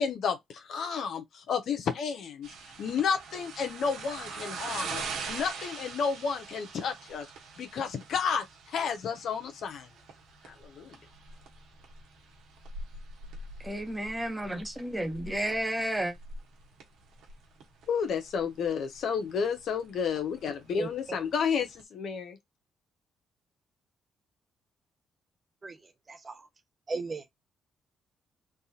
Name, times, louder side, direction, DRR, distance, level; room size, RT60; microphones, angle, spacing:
voice 1, 0.0-2.5 2.8-7.3 7.6-9.9 10.4-11.0 17.9-22.4, left 6 dB, 70° left, 0.9 m, -31 dB
sound 1, 2.4-21.8, right 4 dB, 85° right, 1.1 m, -44 dB
voice 2, 13.6-16.1, right 1 dB, 10° right, 1.0 m, -32 dB
voice 3, 26.1-26.4 26.9-27.3, right 3 dB, 30° right, 0.6 m, -35 dB
3.5 x 2.4 x 2.8 m
cardioid pair, 90°, 0 cm